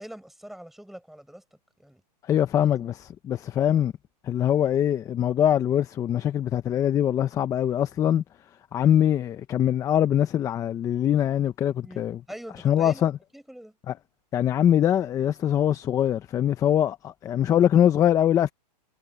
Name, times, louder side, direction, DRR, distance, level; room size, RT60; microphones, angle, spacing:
voice 1, 0.0-1.4 1.8-2.0 2.4-2.5 2.8-2.9 3.7-3.8 11.8-13.0 13.3-13.8, right 1 dB, ahead, 6.4 m, -43 dB
voice 2, 2.3-3.9 4.2-8.2 8.7-12.2 12.6-13.1 13.9-14.0 14.3-18.5, left 10 dB, 15° left, 0.9 m, -23 dB
hypercardioid pair, 150°, 21 cm